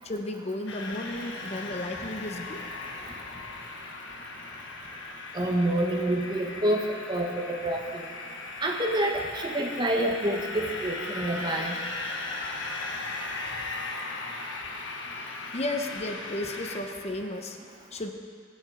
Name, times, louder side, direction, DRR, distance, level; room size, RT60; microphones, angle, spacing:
voice 1, 0.0-2.6 15.2-18.1, left 1 dB, 35° left, 5 dB, 0.9 m, -34 dB
sound 1, 0.7-16.8, left 3 dB, 65° left, 1.5 m, -38 dB
voice 2, 5.3-6.8 7.1-8.0 8.6-11.8, right 1 dB, 25° right, 0 dB, 1.5 m, -27 dB
22.0 x 8.1 x 5.0 m, 2.1 s
head